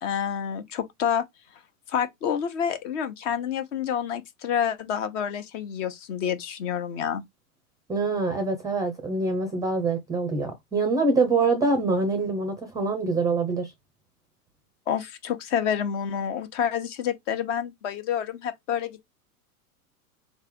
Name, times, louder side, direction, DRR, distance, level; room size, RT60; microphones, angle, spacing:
voice 1, 0.0-1.2 1.9-7.2 14.9-19.0, left 8 dB, 55° left, 1.1 m, -28 dB
voice 2, 7.9-13.7, right 3 dB, 10° right, 0.5 m, -25 dB
3.8 x 3.3 x 3.5 m
hypercardioid pair, 130°, 45 cm